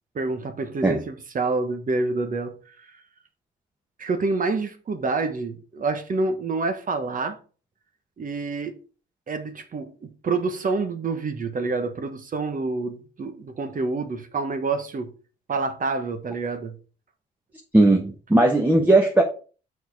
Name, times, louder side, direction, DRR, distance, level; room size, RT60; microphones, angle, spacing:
voice 1, 0.1-2.9 4.0-7.4 8.2-8.7 9.3-15.1 15.5-16.8, right 3 dB, 45° right, 1.3 m, -27 dB
voice 2, 17.7-19.2, right 2 dB, 10° right, 1.2 m, -17 dB
6.5 x 4.8 x 4.7 m
cardioid pair, 90°, 20 cm